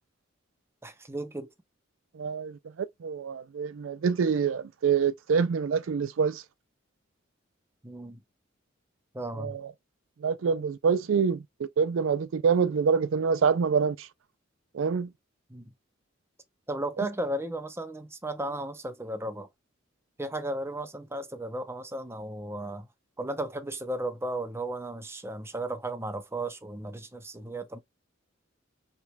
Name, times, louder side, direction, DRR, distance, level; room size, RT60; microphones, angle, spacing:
voice 1, 0.8-1.5 7.8-8.2 9.1-9.6 15.5-15.7 16.7-19.5 20.2-22.9 23.2-27.8, right 1 dB, 15° right, 0.7 m, -35 dB
voice 2, 2.2-6.4 9.3-9.7 10.2-14.1 14.7-15.1, right 6 dB, 70° right, 0.4 m, -26 dB
5.8 x 3.2 x 2.2 m
head